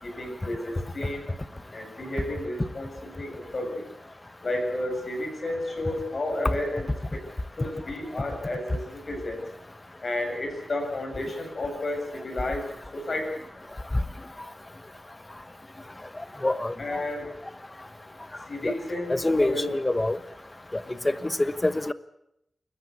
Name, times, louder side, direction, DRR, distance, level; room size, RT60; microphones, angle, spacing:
voice 1, 0.0-1.3 1.7-3.9 4.4-7.2 7.6-9.4 10.0-13.4 16.8-17.3 18.5-19.8 20.9-21.2, left 1 dB, 45° left, 3 dB, 7.1 m, -32 dB
voice 2, 16.4-17.0 18.6-18.7 19.1-20.2 21.0-21.1 21.4-21.9, left 2 dB, 20° left, 13 dB, 1.1 m, -25 dB
29.5 x 14.0 x 8.3 m, 0.80 s
wide cardioid pair, 110°, 0 cm